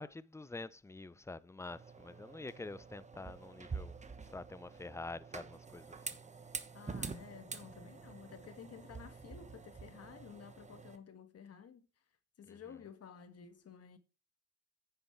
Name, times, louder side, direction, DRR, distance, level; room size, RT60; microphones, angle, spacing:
voice 1, 0.0-4.0 4.3-6.2 12.4-12.6, left 3 dB, 10° left, 0.6 m, -47 dB
sound 1, 1.7-11.0, right 4 dB, 25° right, 1.2 m, -47 dB
voice 2, 6.7-11.9 12.4-14.0, left 7 dB, 55° left, 1.6 m, -53 dB
9.7 x 6.9 x 4.5 m
cardioid pair, 90°, 30 cm